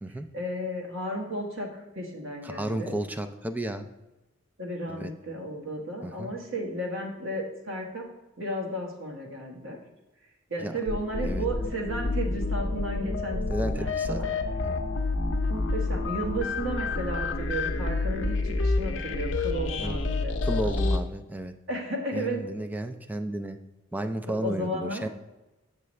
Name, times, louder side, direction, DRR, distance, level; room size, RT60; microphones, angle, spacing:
voice 1, 0.3-2.9 4.6-8.0 8.4-9.8 10.5-14.3 15.5-20.7 21.7-22.4 24.4-25.1, right 1 dB, 70° right, 1 dB, 1.4 m, -33 dB
voice 2, 2.4-3.9 4.9-5.1 6.0-6.3 10.6-10.7 11.2-11.5 13.5-14.2 14.6-14.8 19.8-20.0 20.4-21.5 22.1-23.6 23.9-25.1, right 1 dB, 10° right, 8 dB, 0.3 m, -33 dB
sound 1, 10.9-21.0, left 3 dB, 65° left, 0.6 m, -28 dB
7.3 x 6.8 x 3.2 m, 1.0 s
head